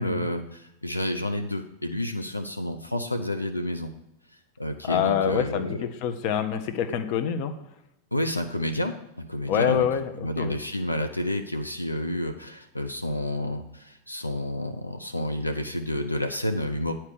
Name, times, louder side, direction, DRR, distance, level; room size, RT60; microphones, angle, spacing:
voice 1, 0.0-3.9 4.6-5.9 8.1-9.9 10.2-16.9, left 1 dB, 85° left, 6 dB, 0.6 m, -30 dB
voice 2, 4.8-7.5 9.5-10.6, left 9 dB, 45° left, 10 dB, 0.7 m, -26 dB
9.5 x 4.4 x 6.6 m, 0.86 s
figure-of-eight pair, 90°, 0 cm